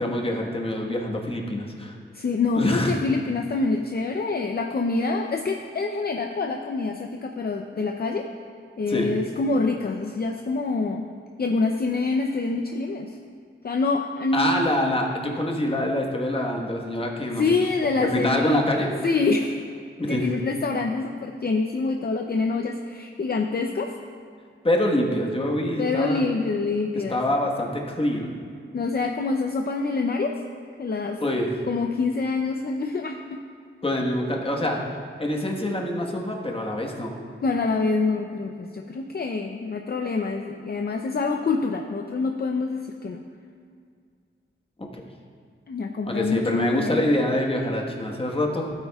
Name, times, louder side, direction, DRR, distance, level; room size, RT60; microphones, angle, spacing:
voice 1, 0.0-1.9 2.5-2.9 8.9-9.1 14.3-17.4 18.1-18.9 20.0-20.2 24.6-26.3 27.1-28.3 31.2-31.5 33.8-34.8 35.2-37.2 44.9-45.0 46.0-48.7, left 1 dB, 25° left, 0 dB, 1.3 m, -25 dB
voice 2, 2.1-8.3 8.8-11.0 11.4-13.2 13.6-14.6 17.3-18.6 19.0-19.6 20.1-23.9 25.8-27.2 28.7-30.3 30.8-31.2 31.7-33.4 37.4-43.2 45.7-47.1, left 3 dB, 50° left, 3 dB, 0.6 m, -26 dB
16.0 x 8.8 x 2.4 m, 2.2 s
wide cardioid pair, 95°, 21 cm